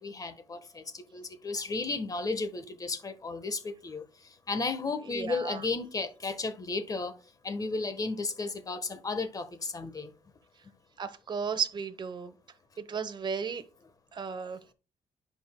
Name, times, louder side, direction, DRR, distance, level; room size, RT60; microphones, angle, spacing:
voice 1, 0.0-4.0 4.5-7.1 7.4-10.1, left 3 dB, 30° left, 1.2 m, -34 dB
voice 2, 5.1-5.6 11.0-12.3 12.8-13.6 14.1-14.6, right 6 dB, 40° right, 0.9 m, -34 dB
10.0 x 5.3 x 2.2 m
cardioid pair, 95°, 12 cm